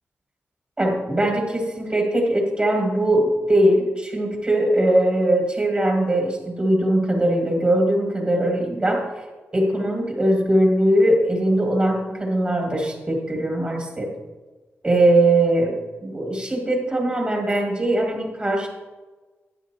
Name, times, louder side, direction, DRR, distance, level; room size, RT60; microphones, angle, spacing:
voice 1, 0.8-9.1 9.5-14.1 14.8-18.7, right 1 dB, 25° right, 0 dB, 2.2 m, -20 dB
12.0 x 9.7 x 2.9 m, 1.3 s
wide cardioid pair, 110°, 5 cm